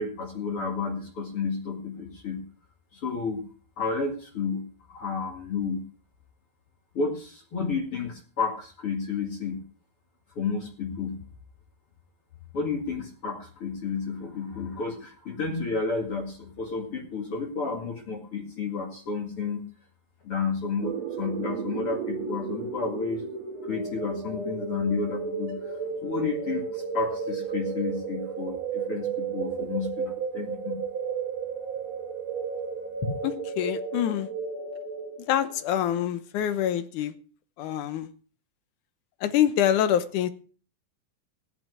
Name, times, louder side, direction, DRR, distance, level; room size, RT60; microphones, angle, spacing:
voice 1, 0.0-2.4 2.9-3.5 3.8-5.8 6.9-9.6 10.4-11.2 12.5-19.6 20.2-23.3 23.6-25.6 26.0-30.8, left 4 dB, 45° left, 2.6 m, -31 dB
sound 1, 20.8-35.5, right 5 dB, 50° right, 3.1 m, -33 dB
voice 2, 33.6-34.3 35.3-37.1 37.6-38.1 39.2-40.3, left 10 dB, 70° left, 2.2 m, -25 dB
15.0 x 10.5 x 4.8 m
omnidirectional pair, 4.2 m